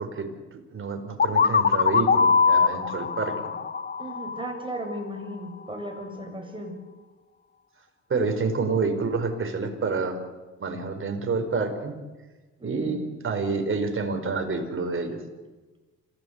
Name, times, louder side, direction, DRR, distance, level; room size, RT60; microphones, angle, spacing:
voice 1, 0.0-3.5 8.1-10.2 10.6-11.9 12.6-15.2, right 4 dB, 45° right, 5 dB, 4.7 m, -28 dB
sound 1, 1.2-5.0, left 5 dB, 35° left, 1.1 m, -22 dB
voice 2, 4.0-6.8 12.6-13.0, right 1 dB, 15° right, 2 dB, 6.7 m, -36 dB
26.5 x 16.0 x 8.2 m, 1.2 s
cardioid pair, 90°, 30 cm